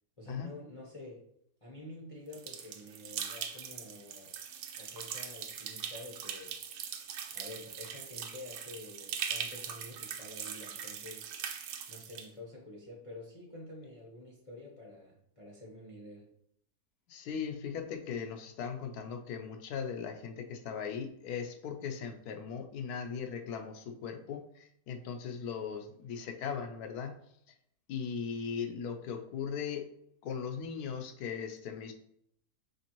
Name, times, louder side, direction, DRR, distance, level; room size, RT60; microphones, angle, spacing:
voice 1, 0.2-1.2 1.6-4.3 4.8-6.5 7.3-11.3 11.9-16.2, left 2 dB, 30° left, -3 dB, 0.6 m, -48 dB
sound 1, 2.3-12.3, right 8 dB, 80° right, 1.2 m, -41 dB
voice 2, 17.1-27.1 27.9-29.8 30.2-31.9, left 6 dB, 75° left, 5 dB, 1.1 m, -38 dB
5.2 x 3.3 x 3.0 m, 0.71 s
omnidirectional pair, 1.8 m